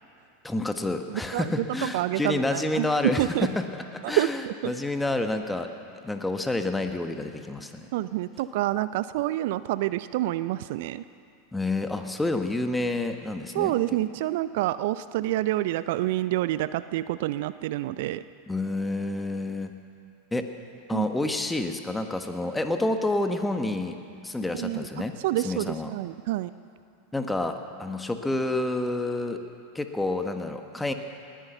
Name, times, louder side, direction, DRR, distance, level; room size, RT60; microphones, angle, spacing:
voice 1, 0.4-5.7 6.0-7.8 11.5-13.7 18.5-19.7 20.3-20.4 20.9-23.9 24.2-25.1 25.4-25.9 27.1-29.4 29.7-30.9, left 2 dB, 10° left, 6 dB, 1.3 m, -29 dB
voice 2, 1.1-3.5 4.0-4.7 7.9-11.0 13.5-18.2 20.9-21.1 24.5-24.9 25.2-26.5, right 15 dB, 60° right, 15 dB, 0.4 m, -27 dB
19.5 x 10.0 x 6.9 m, 2.5 s
hypercardioid pair, 90°, 0 cm